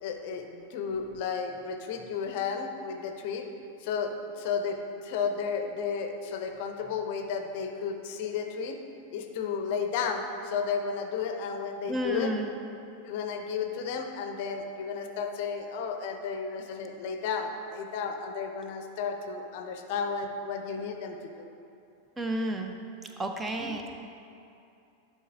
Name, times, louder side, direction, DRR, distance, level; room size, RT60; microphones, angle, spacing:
voice 1, 0.0-3.5 3.8-4.8 5.0-8.8 9.1-12.3 13.1-21.5, left 6 dB, 50° left, 5 dB, 0.5 m, -33 dB
voice 2, 11.9-12.5 22.2-22.7 23.2-24.0, right 1 dB, 15° right, 4 dB, 0.5 m, -31 dB
11.0 x 5.5 x 2.4 m, 2.7 s
figure-of-eight pair, 90°, 0 cm